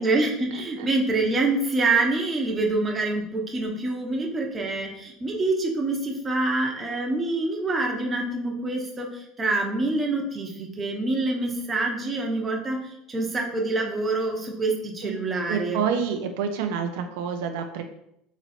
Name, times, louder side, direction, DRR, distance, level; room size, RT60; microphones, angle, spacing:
voice 1, 0.0-15.9, right 2 dB, 20° right, 0 dB, 0.9 m, -26 dB
voice 2, 0.5-0.9 15.0-15.2 15.5-17.8, right 7 dB, 80° right, 5 dB, 0.5 m, -28 dB
3.9 x 3.0 x 4.3 m, 0.77 s
supercardioid pair, 130°, 0 cm